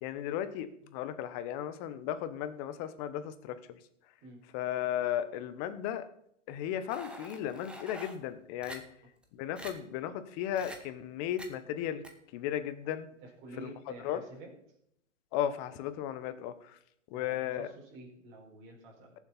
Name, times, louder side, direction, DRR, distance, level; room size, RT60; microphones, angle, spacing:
voice 1, 0.0-0.7 0.9-3.6 4.5-6.1 6.5-8.8 9.4-12.0 12.3-13.1 13.6-13.7 14.0-14.2 15.3-16.5 17.1-17.7, left 11 dB, 30° left, 12 dB, 1.0 m, -35 dB
sound 1, 6.9-8.2 8.6-8.8 9.2-9.3 9.6-9.7 10.5-10.8 11.4-11.5 12.0-12.1, right 1 dB, 5° right, 1.1 m, -45 dB
voice 2, 13.2-14.5 17.1-19.1, right 2 dB, 30° right, -2 dB, 4.3 m, -49 dB
17.5 x 7.4 x 4.0 m, 0.72 s
hypercardioid pair, 130°, 37 cm